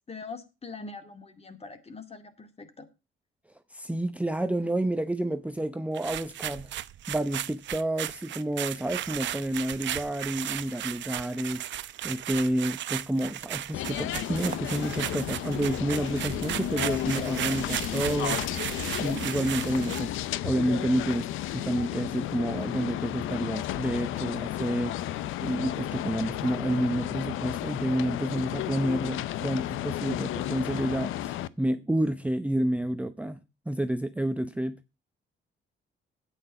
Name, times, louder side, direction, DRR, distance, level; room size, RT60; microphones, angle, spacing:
voice 1, 0.1-2.9, left 4 dB, 30° left, 2.2 m, -43 dB
voice 2, 3.7-6.7 7.1-11.6 12.0-18.5 19.0-25.0 25.4-33.4 33.7-34.8, right 1 dB, 5° right, 0.8 m, -29 dB
sound 1, 5.9-20.2, right 12 dB, 70° right, 0.7 m, -35 dB
sound 2, 13.7-31.5, left 13 dB, 85° left, 0.6 m, -33 dB
9.2 x 8.5 x 5.4 m
cardioid pair, 90°, 20 cm